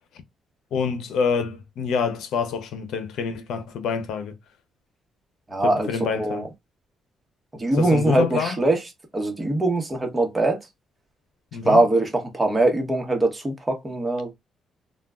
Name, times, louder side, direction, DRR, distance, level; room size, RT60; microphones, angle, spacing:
voice 1, 0.7-4.3 5.6-6.5 7.7-8.6 11.5-11.8, left 5 dB, 80° left, 0.6 m, -26 dB
voice 2, 5.5-6.5 7.5-8.8 9.1-10.6 11.6-14.3, right 2 dB, 20° right, 1.0 m, -22 dB
3.3 x 2.2 x 2.4 m
cardioid pair, 90°, 0 cm